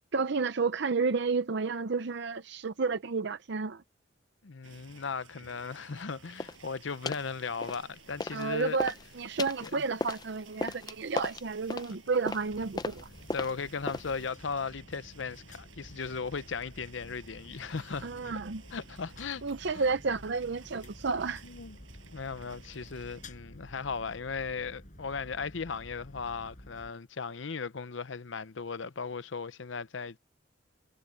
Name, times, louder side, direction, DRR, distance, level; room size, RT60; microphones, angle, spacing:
voice 1, 0.1-3.8 8.3-13.1 18.0-18.6 19.4-21.4, right 4 dB, 60° right, 0.7 m, -31 dB
voice 2, 4.4-8.8 9.6-9.7 13.3-18.1 18.7-19.4 21.4-21.8 22.1-30.2, left 5 dB, 70° left, 0.7 m, -37 dB
sound 1, 4.6-23.3, right 5 dB, 90° right, 7.8 m, -56 dB
sound 2, 6.4-6.6 7.1-7.3 7.6-8.5 8.7-14.3, left 3 dB, 20° left, 0.6 m, -37 dB
sound 3, 12.5-26.9, left 1 dB, 40° left, 7.2 m, -51 dB
head